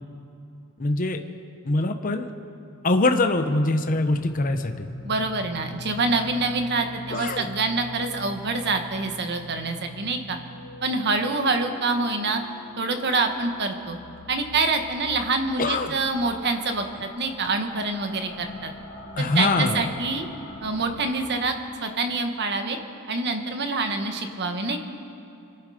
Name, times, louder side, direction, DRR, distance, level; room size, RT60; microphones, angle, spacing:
voice 1, 0.8-1.2 1.6-2.3 2.8-4.9 7.1-7.5 15.6-15.9 19.2-19.9, left 2 dB, 40° left, 6 dB, 0.8 m, -23 dB
sound 1, 3.7-21.1, equal, 75° left, 3.0 m, -43 dB
voice 2, 5.0-10.4 10.8-12.4 12.8-14.0 14.3-18.7 19.2-20.3 20.6-21.5 21.8-22.8 23.1-24.8, right 3 dB, 50° right, 6 dB, 1.4 m, -26 dB
26.0 x 11.0 x 5.0 m, 2.8 s
head